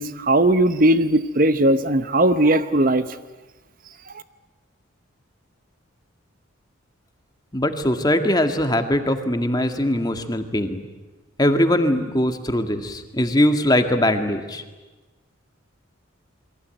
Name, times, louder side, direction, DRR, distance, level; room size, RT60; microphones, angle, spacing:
voice 1, 0.0-3.0, right 1 dB, 40° right, 11 dB, 0.9 m, -18 dB
voice 2, 7.5-10.8 11.4-14.6, left 1 dB, 20° left, 6 dB, 1.9 m, -21 dB
28.5 x 23.0 x 9.1 m, 1.2 s
head